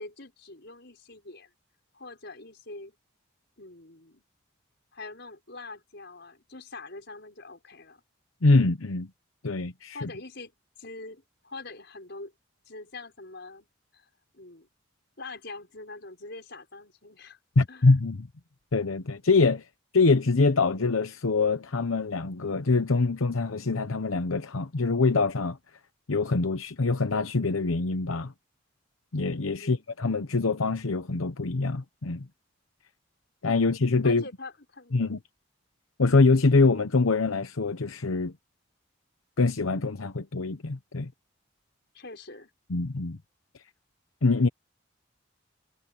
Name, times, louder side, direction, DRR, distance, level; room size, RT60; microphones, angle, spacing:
voice 1, 0.0-1.5 1.9-2.9 3.6-4.2 4.9-8.0 9.9-10.5 10.8-12.3 12.7-13.7 13.9-14.1 14.3-14.7 15.2-17.4 17.7-17.9 29.6-29.9 34.0-35.2 41.9-42.5, left 3 dB, 55° left, 6.4 m, -44 dB
voice 2, 8.4-9.1 9.4-10.1 17.6-18.3 18.7-19.6 19.9-25.6 26.1-28.3 29.1-32.3 33.4-34.2 34.9-35.2 36.0-38.3 39.4-41.1 42.7-43.2 44.2-44.5, left 3 dB, 90° left, 0.9 m, -24 dB
head